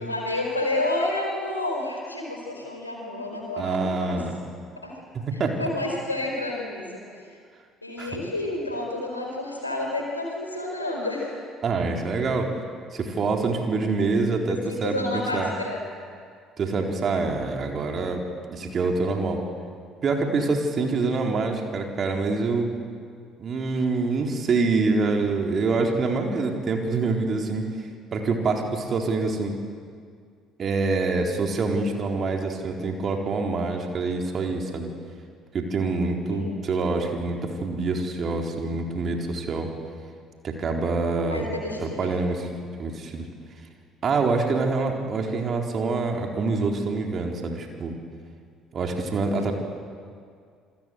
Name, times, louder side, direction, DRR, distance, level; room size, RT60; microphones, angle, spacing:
voice 1, 0.0-4.2 4.8-4.9 5.6-7.2 7.8-11.4 14.7-15.8 36.3-36.5 41.3-42.1 49.3-49.5, left 2 dB, 85° left, 1 dB, 4.6 m, -30 dB
voice 2, 3.6-4.4 5.3-5.5 8.0-8.2 11.6-12.5 12.9-15.5 16.6-18.2 18.5-19.4 20.0-22.7 23.4-27.7 28.1-29.6 30.6-34.9 35.5-39.7 40.4-41.5 41.8-42.5 42.8-43.3 44.0-48.0 48.7-49.5, right 3 dB, 40° right, 2 dB, 4.1 m, -26 dB
27.5 x 23.5 x 8.1 m, 2.1 s
figure-of-eight pair, 55°, 0 cm